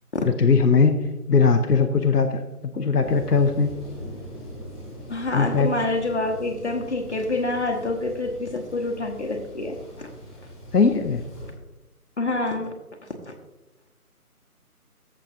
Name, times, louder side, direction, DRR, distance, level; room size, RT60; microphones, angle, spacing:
voice 1, 0.2-3.7 5.3-5.7 10.7-11.2, left 5 dB, 85° left, 6 dB, 0.9 m, -20 dB
Thunder, 3.0-11.5, equal, 5° left, 1.6 m, -41 dB
voice 2, 5.1-10.1 12.2-12.7, left 2 dB, 50° left, 3 dB, 1.1 m, -27 dB
14.5 x 6.7 x 2.6 m, 1.1 s
figure-of-eight pair, 160°, 46 cm